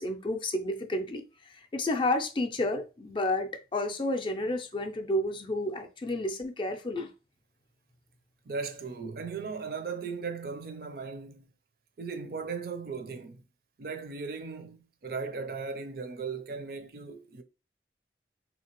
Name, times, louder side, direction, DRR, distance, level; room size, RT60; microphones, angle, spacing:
voice 1, 0.0-7.1, left 1 dB, 30° left, 0.4 m, -31 dB
voice 2, 8.5-11.5 12.0-13.4 13.8-17.4, right 5 dB, 55° right, 0.5 m, -37 dB
3.6 x 2.8 x 3.0 m
head